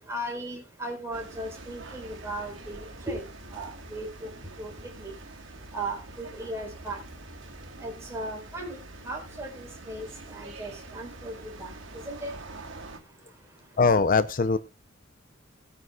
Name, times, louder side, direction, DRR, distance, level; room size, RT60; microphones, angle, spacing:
voice 1, 0.1-3.2 3.5-4.3 4.6-4.7 5.0-5.1 5.7-7.0 7.8-8.8 9.1-10.0 10.3-11.7 12.0-12.3, right 1 dB, 15° right, 1 dB, 4.4 m, -36 dB
sound 1, 1.1-13.0, right 2 dB, 65° right, 3.1 m, -45 dB
voice 2, 13.8-14.6, left 4 dB, 45° left, 14 dB, 0.6 m, -21 dB
20.0 x 9.3 x 2.3 m, 0.27 s
head